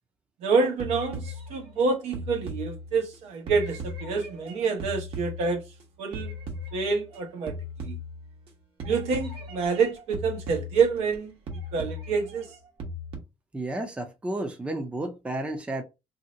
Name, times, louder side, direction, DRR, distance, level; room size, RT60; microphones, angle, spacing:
voice 1, 0.4-5.6 6.0-6.3 6.7-7.5 7.8-8.0 8.8-11.3 11.7-12.5, right 5 dB, 85° right, 1.0 m, -27 dB
sound 1, 0.8-3.1 3.5-5.8 6.1-7.2 7.5-8.5 8.8-11.2 11.5-13.2, left 1 dB, 55° right, 1.1 m, -37 dB
voice 2, 13.5-15.8, right 1 dB, 10° right, 0.5 m, -32 dB
2.7 x 2.1 x 3.7 m
cardioid pair, 140°, 11 cm